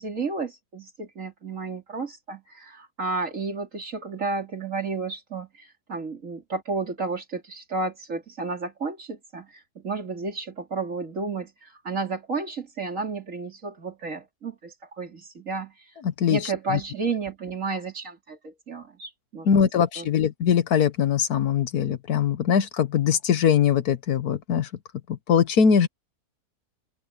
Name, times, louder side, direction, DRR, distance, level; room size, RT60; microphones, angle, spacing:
voice 1, 0.0-15.9 16.3-19.7 20.0-20.1, right 4 dB, 55° right, 3.5 m, -32 dB
voice 2, 16.2-16.8 19.5-24.7 25.1-25.9, left 7 dB, 90° left, 1.7 m, -22 dB
open air
omnidirectional pair, 1.6 m